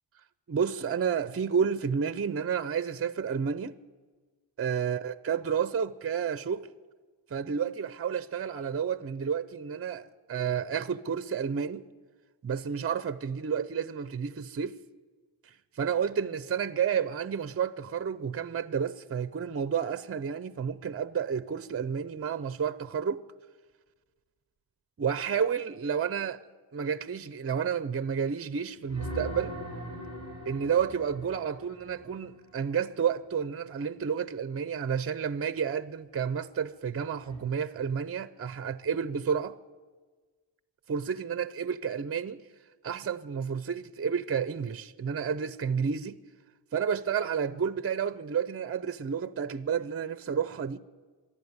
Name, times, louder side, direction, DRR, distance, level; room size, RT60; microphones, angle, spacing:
voice 1, 0.5-3.8 4.6-6.7 7.3-11.8 12.4-14.8 15.8-23.2 25.0-26.4 26.7-29.6 30.5-39.6 40.9-42.4 42.8-46.2 46.7-50.8, right 7 dB, 35° right, 0.6 m, -30 dB
sound 1, 28.9-32.7 37.2-37.4, equal, 35° left, 6.7 m, -40 dB
25.5 x 11.5 x 9.6 m
wide cardioid pair, 125°, 42 cm